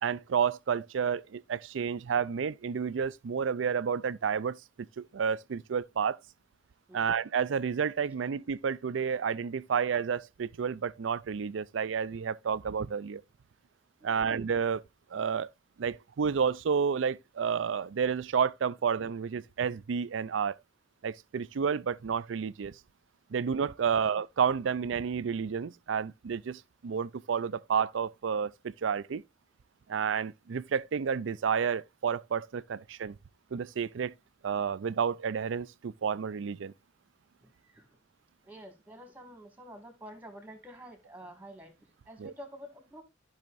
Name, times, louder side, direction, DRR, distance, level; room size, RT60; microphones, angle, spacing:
voice 1, 0.0-6.2 6.9-13.2 14.0-14.8 15.1-15.5 15.8-20.6 21.0-22.7 23.3-29.2 29.9-33.1 33.5-34.1 34.4-36.7 42.2-42.3, right 6 dB, 75° right, 0.4 m, -30 dB
voice 2, 37.4-37.9 38.4-41.7 42.1-43.0, equal, 10° right, 2.1 m, -49 dB
14.0 x 5.6 x 2.5 m
head